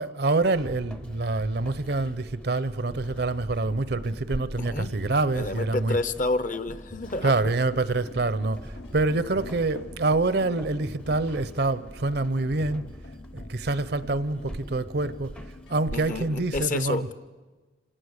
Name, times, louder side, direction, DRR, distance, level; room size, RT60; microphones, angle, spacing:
voice 1, 0.0-6.0 7.2-12.9 13.3-15.3 15.7-17.1, right 2 dB, 60° right, 0.7 m, -26 dB
sound 1, 0.5-16.5, equal, 5° left, 0.6 m, -44 dB
sound 2, 1.2-15.9, left 3 dB, 75° left, 1.0 m, -49 dB
voice 2, 5.3-7.4 15.9-17.1, left 2 dB, 45° left, 0.8 m, -29 dB
26.5 x 18.0 x 6.6 m
head